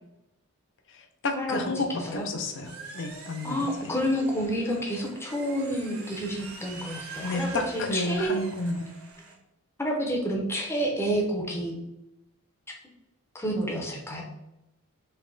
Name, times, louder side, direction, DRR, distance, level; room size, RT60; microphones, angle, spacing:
voice 1, 0.9-3.7 7.2-8.9, left 2 dB, 55° left, 5 dB, 0.6 m, -31 dB
voice 2, 1.9-2.3 3.4-8.4 9.8-11.8 13.3-14.2, equal, 10° left, 0 dB, 0.7 m, -29 dB
sound 1, 2.0-9.3, right 3 dB, 75° right, 1.0 m, -45 dB
3.4 x 3.1 x 3.8 m, 0.91 s
head